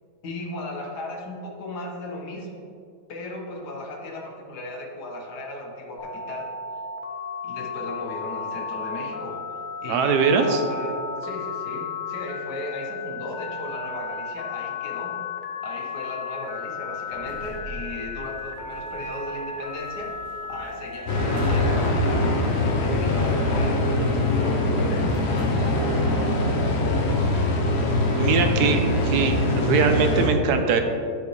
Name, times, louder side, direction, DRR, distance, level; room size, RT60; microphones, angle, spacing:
voice 1, 0.2-2.5 3.1-6.5 7.4-9.4 9.8-15.2 15.6-27.4, left 1 dB, 70° left, 0 dB, 1.6 m, -36 dB
Telephone, 6.0-21.7, left 5 dB, 90° left, 0.4 m, -34 dB
voice 2, 9.9-10.6 28.2-30.8, right 5 dB, 70° right, 6 dB, 1.1 m, -21 dB
sound 1, 17.0-24.1 25.1-25.6, right 1 dB, 35° right, 1.1 m, -40 dB
sound 2, 21.1-30.3, left 2 dB, 50° left, 0.8 m, -23 dB
9.5 x 5.2 x 3.1 m, 2.4 s
omnidirectional pair, 1.8 m